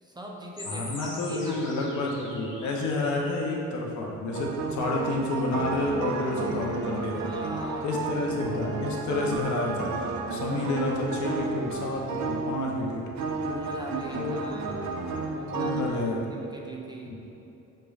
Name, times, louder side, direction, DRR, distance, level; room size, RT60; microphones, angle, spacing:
voice 1, 0.0-2.0 7.1-8.5 13.4-14.9 15.2-16.0 16.3-17.2, right 1 dB, 15° right, -1 dB, 0.4 m, -41 dB
sound 1, 0.6-3.6, left 2 dB, 40° left, 1.1 m, -43 dB
voice 2, 0.7-7.3 7.8-10.0 10.3-13.0 14.2-14.4 15.5-16.2 17.1-17.2, left 2 dB, 70° left, -1 dB, 0.7 m, -29 dB
sound 2, 4.3-15.9, right 4 dB, 70° right, 0.5 m, -32 dB
6.4 x 3.1 x 2.4 m, 3.0 s
cardioid pair, 90°, 30 cm